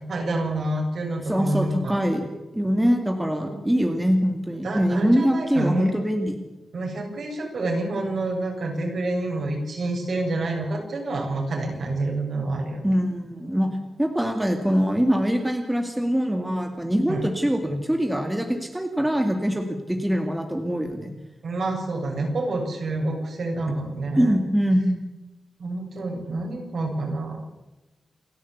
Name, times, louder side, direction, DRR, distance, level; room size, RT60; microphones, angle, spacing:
voice 1, 0.1-2.0 3.4-3.5 4.6-5.9 6.7-12.9 17.1-17.3 21.4-24.4 25.6-27.4, right 2 dB, 65° right, 1 dB, 7.5 m, -28 dB
voice 2, 1.3-2.3 2.5-6.4 12.8-13.7 14.0-21.1 24.2-25.0, equal, 5° right, 4 dB, 2.3 m, -23 dB
28.5 x 12.0 x 8.4 m, 1.0 s
wide cardioid pair, 160°, 0 cm